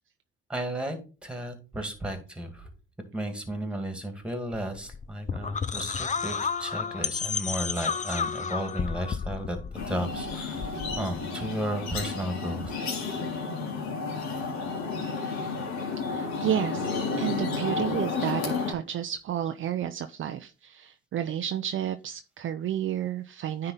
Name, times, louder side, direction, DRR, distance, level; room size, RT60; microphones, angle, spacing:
voice 1, 0.5-2.7 3.1-12.8, right 1 dB, 5° right, 6 dB, 2.3 m, -34 dB
sound 1, 4.5-11.3, left 6 dB, 25° left, 0.7 m, -32 dB
sound 2, 9.7-18.7, left 4 dB, 65° left, 2.3 m, -32 dB
voice 2, 16.1-23.7, right 10 dB, 45° right, 8 dB, 0.6 m, -31 dB
9.7 x 3.8 x 4.0 m, 0.33 s
hypercardioid pair, 65°, 30 cm